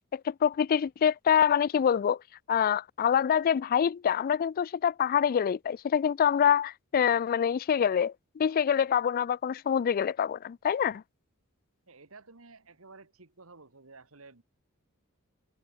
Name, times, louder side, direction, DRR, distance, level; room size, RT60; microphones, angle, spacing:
voice 1, 0.1-2.2 2.5-11.0, left 8 dB, 45° left, 0.3 m, -26 dB
voice 2, 11.9-14.4, right 3 dB, 75° right, 2.1 m, -52 dB
head